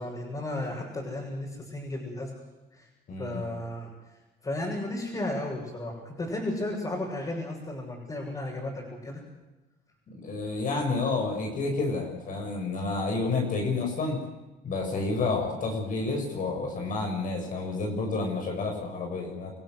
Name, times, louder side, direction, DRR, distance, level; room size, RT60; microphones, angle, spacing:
voice 1, 0.0-2.3 2.7-2.9 3.2-3.9 4.4-9.2, left 1 dB, 25° left, -3 dB, 7.3 m, -34 dB
voice 2, 3.1-3.4 10.1-14.2 14.6-19.5, left 3 dB, 50° left, 2 dB, 6.6 m, -30 dB
28.0 x 15.5 x 8.0 m, 1.1 s
cardioid pair, 110°, 17 cm